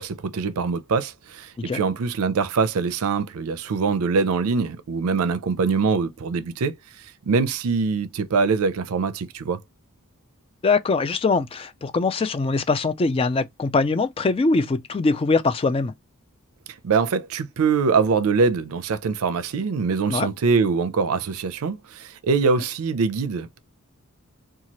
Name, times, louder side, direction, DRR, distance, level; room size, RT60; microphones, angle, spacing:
voice 1, 0.0-6.7 7.3-9.6 16.8-23.6, right 5 dB, 75° right, 0.4 m, -23 dB
voice 2, 10.6-15.9 20.1-20.3, left 3 dB, 25° left, 0.3 m, -22 dB
2.8 x 2.3 x 2.9 m
head